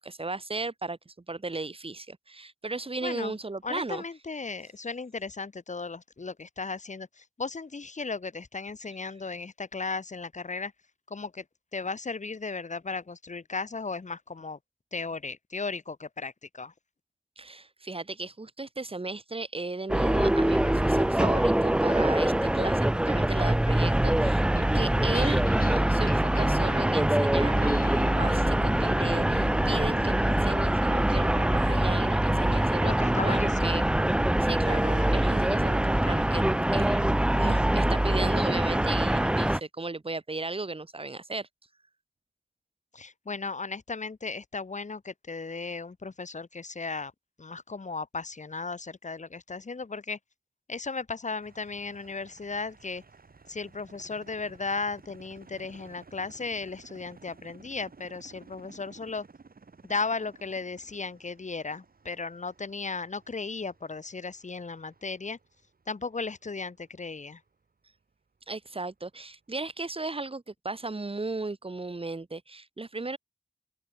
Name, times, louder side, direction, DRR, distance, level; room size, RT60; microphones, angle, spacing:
voice 1, 0.0-4.0 17.4-33.8 34.4-36.4 36.7-41.5 68.5-73.2, right 3 dB, 40° right, 1.5 m, -35 dB
voice 2, 3.0-3.4 3.6-10.7 11.1-11.4 11.7-14.6 14.9-16.7 32.8-33.9 42.9-47.1 47.4-50.2 50.7-53.0 53.5-59.2 59.8-65.4 65.9-67.4, left 4 dB, 55° left, 1.3 m, -36 dB
sound 1, 19.9-39.6, right 1 dB, 5° right, 0.3 m, -24 dB
sound 2, 24.1-34.7, left 5 dB, 80° left, 1.4 m, -43 dB
sound 3, 51.4-67.5 67.9-68.0 69.1-69.2 70.0-70.1, right 4 dB, 80° right, 5.6 m, -55 dB
open air
wide cardioid pair, 55°, 15 cm